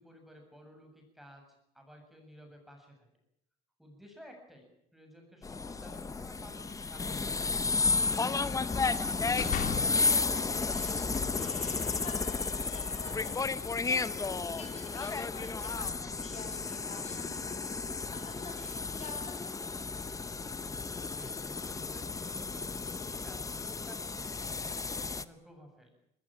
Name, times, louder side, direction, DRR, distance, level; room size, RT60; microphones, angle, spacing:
voice 1, 0.0-1.4 1.7-3.1 3.8-4.7 4.9-7.4 21.1-25.9, equal, ahead, 3 dB, 7.6 m, -54 dB
sound 1, 5.4-25.2, left 4 dB, 20° left, 1.0 m, -33 dB
voice 2, 8.1-19.6, left 4 dB, 40° left, 4 dB, 6.7 m, -49 dB
sound 2, 9.2-10.1 10.6-13.4, left 8 dB, 60° left, 2.9 m, -42 dB
20.5 x 20.5 x 8.9 m, 0.75 s
cardioid pair, 110°, 16 cm